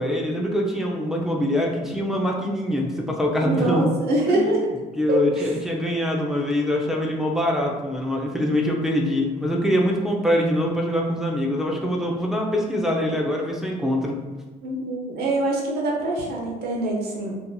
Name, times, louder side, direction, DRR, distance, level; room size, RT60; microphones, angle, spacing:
voice 1, 0.0-3.9 4.3-4.6 5.0-14.2, left 1 dB, ahead, -1 dB, 0.4 m, -24 dB
voice 2, 3.4-4.7 5.3-5.5 14.6-17.3, right 2 dB, 70° right, -2 dB, 0.8 m, -24 dB
2.8 x 2.5 x 2.2 m, 1.2 s
cardioid pair, 110°, 17 cm